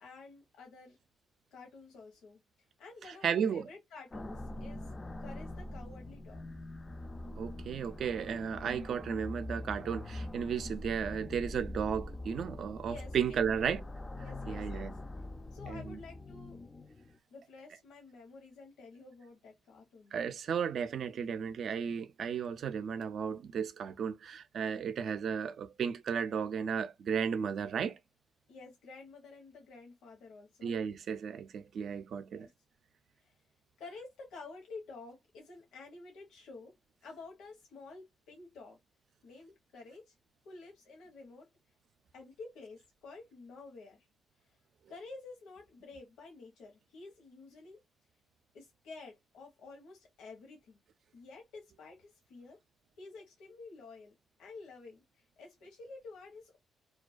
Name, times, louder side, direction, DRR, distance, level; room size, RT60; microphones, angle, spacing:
voice 1, 0.0-1.0 1.5-2.4 2.8-4.9 5.2-6.4 12.9-13.8 14.2-15.0 15.5-16.6 17.3-20.1 28.5-30.7 32.3-32.5 33.2-33.4 33.8-36.7 37.0-38.8 39.2-40.1 40.4-41.5 42.1-44.1 44.9-47.8 48.5-50.8 51.1-52.6 53.0-56.6, left 3 dB, 85° left, 0.8 m, -51 dB
voice 2, 3.1-3.7 7.4-13.8 14.5-14.9 15.7-16.0 20.1-28.0 30.6-32.5, right 7 dB, 60° right, 0.4 m, -34 dB
sound 1, 4.1-17.2, left 1 dB, 25° left, 0.3 m, -43 dB
2.2 x 2.2 x 2.4 m
cardioid pair, 90°, 0 cm